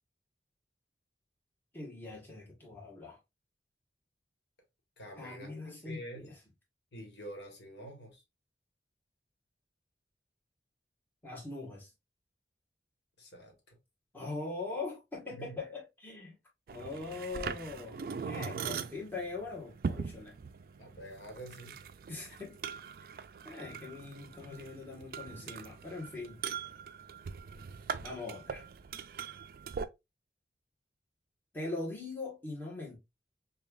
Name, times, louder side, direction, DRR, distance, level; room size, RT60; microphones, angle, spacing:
voice 1, 1.7-3.2 5.2-6.4 11.2-11.9 14.1-16.3 16.7-20.3 22.1-22.6 23.0-23.2 23.4-26.4 28.0-28.7 31.5-33.0, left 3 dB, 10° left, 1.1 m, -42 dB
voice 2, 5.0-6.3 6.9-8.2 13.2-13.8 15.3-15.6 20.8-21.8, right 1 dB, 75° left, 1.3 m, -47 dB
sound 1, 16.7-29.9, right 6 dB, 55° right, 0.3 m, -41 dB
5.2 x 2.3 x 2.3 m
head